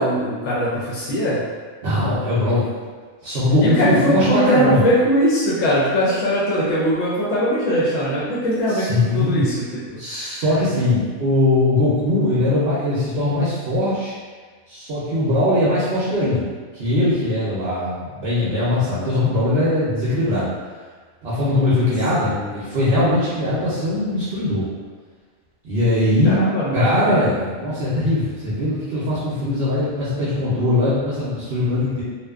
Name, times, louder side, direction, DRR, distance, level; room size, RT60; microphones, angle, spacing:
voice 1, 0.0-1.4 3.6-9.6 10.0-10.4 22.2-22.5 26.2-27.3, equal, 70° left, -7 dB, 0.9 m, -21 dB
voice 2, 1.8-2.6 3.2-4.8 8.7-9.4 10.0-14.1 14.7-16.4 16.7-20.5 21.2-24.7 25.6-26.4 26.7-32.0, left 1 dB, 60° right, -10 dB, 0.7 m, -20 dB
2.6 x 2.2 x 2.3 m, 1.5 s
omnidirectional pair, 1.5 m